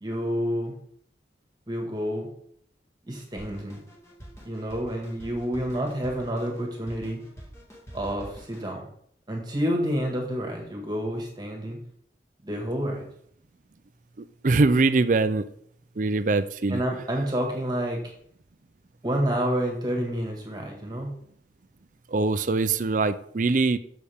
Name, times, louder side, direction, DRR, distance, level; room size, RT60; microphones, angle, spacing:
voice 1, 0.0-0.8 1.7-2.3 3.1-3.8 4.4-7.2 7.9-8.9 9.3-11.8 12.4-13.1 16.7-18.1 19.0-21.1, equal, 25° right, 1.8 m, -29 dB
Drum kit, 3.4-8.7, equal, 15° left, 2.0 m, -46 dB
voice 2, 14.4-15.4 16.0-16.8 22.1-23.8, right 3 dB, 45° right, 0.5 m, -22 dB
8.5 x 6.8 x 3.5 m
head